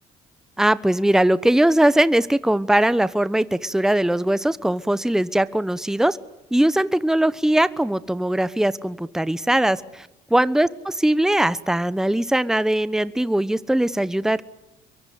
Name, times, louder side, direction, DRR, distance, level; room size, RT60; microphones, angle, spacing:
voice 1, 0.6-6.2 6.5-14.4, right 1 dB, 5° right, 16 dB, 1.0 m, -20 dB
26.0 x 23.0 x 9.4 m, 0.90 s
supercardioid pair, 70°, 16 cm